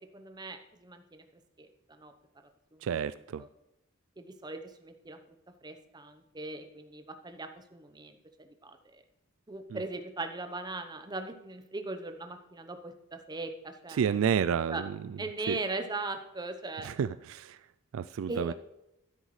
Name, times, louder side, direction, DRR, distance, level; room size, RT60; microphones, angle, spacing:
voice 1, 0.1-1.2 1.6-2.1 2.7-3.1 3.4-3.5 4.2-5.2 5.6-9.0 9.5-14.1 14.7-14.8 15.2-16.9 18.3-18.5, right 3 dB, 20° right, 7 dB, 0.8 m, -39 dB
voice 2, 2.8-3.4 9.7-9.8 13.9-15.0 15.5-15.6 16.8-17.6 17.9-18.5, right 7 dB, 70° right, 14 dB, 0.3 m, -30 dB
12.0 x 10.0 x 3.2 m, 0.92 s
head